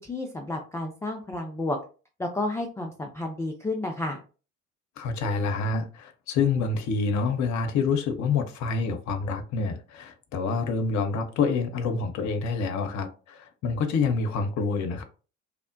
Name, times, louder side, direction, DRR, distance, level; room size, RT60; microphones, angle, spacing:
voice 1, 0.0-1.8 2.2-4.2, left 2 dB, 10° left, 0.3 m, -31 dB
voice 2, 5.0-15.0, left 4 dB, 45° left, 0.6 m, -27 dB
3.0 x 2.0 x 2.5 m
figure-of-eight pair, 50°, 39 cm